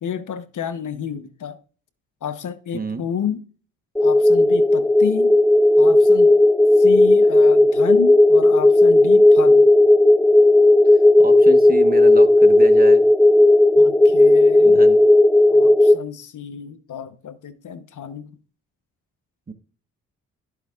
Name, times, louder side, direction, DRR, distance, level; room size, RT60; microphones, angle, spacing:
voice 1, 0.0-1.6 2.2-3.4 4.0-5.4 5.8-6.3 6.8-9.6 13.7-14.8 15.5-18.3, left 8 dB, 60° left, 1.0 m, -31 dB
sound 1, 4.0-16.0, left 2 dB, 5° left, 0.5 m, -13 dB
voice 2, 10.9-13.0 14.6-15.0 19.5-19.6, right 3 dB, 25° right, 1.2 m, -30 dB
12.0 x 8.2 x 2.4 m
supercardioid pair, 55°, 35 cm